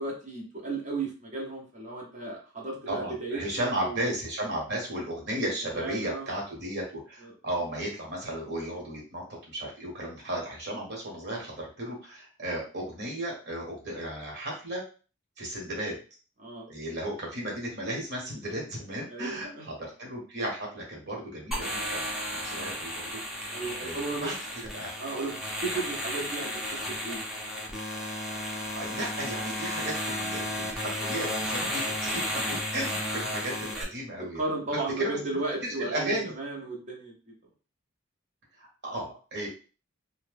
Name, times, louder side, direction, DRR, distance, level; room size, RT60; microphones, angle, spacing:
voice 1, 0.0-4.1 5.4-6.3 16.4-16.7 19.1-19.7 23.5-24.3 25.0-27.2 31.8-31.9 34.3-37.3, right 3 dB, 35° right, -1 dB, 0.8 m, -35 dB
voice 2, 2.9-14.8 15.4-16.0 16.7-23.5 23.8-24.9 28.4-34.4 35.0-35.2 35.6-36.3 38.6-39.5, right 1 dB, 55° right, -2 dB, 1.2 m, -35 dB
sound 1, 21.5-33.8, equal, ahead, 0.7 m, -33 dB
2.8 x 2.2 x 3.3 m, 0.36 s
head